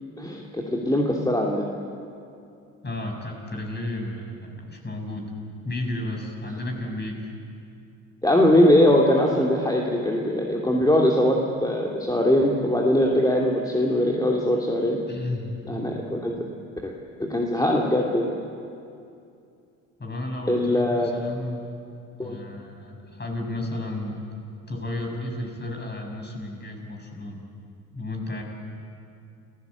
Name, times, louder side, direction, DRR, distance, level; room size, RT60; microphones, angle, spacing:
voice 1, 0.2-1.7 8.2-15.0 15.7-16.4 16.8-16.9 17.2-18.3 20.5-21.1 22.2-22.4, left 1 dB, 10° left, -1 dB, 2.8 m, -21 dB
voice 2, 2.8-5.3 5.6-7.3 14.9-15.6 20.0-21.7 22.2-24.2 24.7-27.5 27.9-28.4, left 1 dB, 25° left, 2 dB, 6.6 m, -33 dB
28.5 x 15.5 x 8.3 m, 2.5 s
hypercardioid pair, 60°, 40 cm